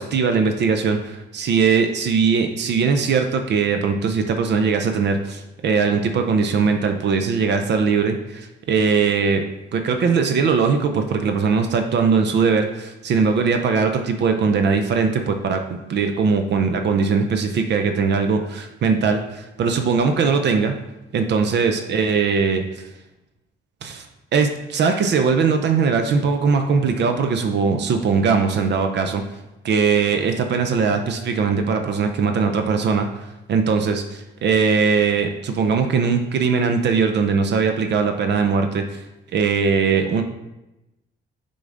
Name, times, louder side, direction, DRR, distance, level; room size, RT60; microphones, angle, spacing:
voice 1, 0.0-9.4 9.7-20.7 21.1-22.8 23.8-24.1 24.3-29.2 29.6-39.0 39.3-40.2, right 5 dB, 60° right, 6 dB, 0.6 m, -20 dB
6.5 x 3.9 x 3.8 m, 0.96 s
cardioid pair, 90°, 20 cm